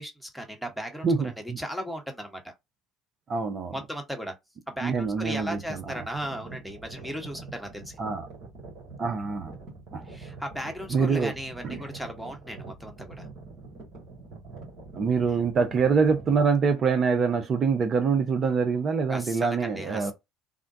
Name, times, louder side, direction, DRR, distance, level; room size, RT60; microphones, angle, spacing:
voice 1, 0.0-1.1 1.6-2.5 3.7-4.4 4.7-8.0 10.1-13.3 15.3-15.4 19.1-20.1, equal, ahead, 1.0 m, -36 dB
voice 2, 1.0-1.6 3.3-3.7 4.8-5.8 8.0-8.3 9.0-9.5 9.9-10.0 10.9-11.3 11.6-11.8 14.9-20.1, right 5 dB, 45° right, 0.6 m, -25 dB
sound 1, 5.0-16.4, right 3 dB, 60° right, 1.8 m, -45 dB
3.6 x 2.2 x 2.6 m
hypercardioid pair, 65°, 0 cm